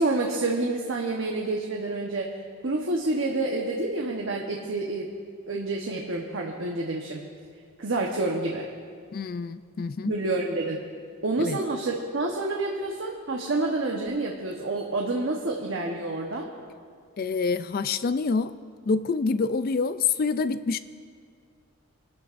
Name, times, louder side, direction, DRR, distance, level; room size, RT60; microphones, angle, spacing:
voice 1, 0.0-2.3 2.6-5.1 5.5-7.2 7.8-8.7 10.0-10.8 11.2-16.5, right 2 dB, 60° right, -1 dB, 1.1 m, -28 dB
voice 2, 9.1-10.2 11.4-11.6 17.2-18.5 18.9-20.8, left 4 dB, 45° left, 14 dB, 0.3 m, -26 dB
26.5 x 12.0 x 2.6 m, 2.1 s
head